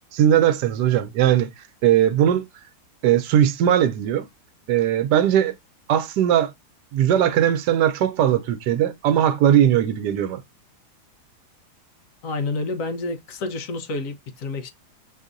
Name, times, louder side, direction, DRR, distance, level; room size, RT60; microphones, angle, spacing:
voice 1, 0.1-1.5 1.8-2.5 3.0-4.2 4.7-5.5 5.9-6.5 6.9-10.4, right 10 dB, 90° right, 1.2 m, -19 dB
voice 2, 12.2-14.7, left 3 dB, 60° left, 1.1 m, -29 dB
6.1 x 2.7 x 2.5 m
omnidirectional pair, 1.8 m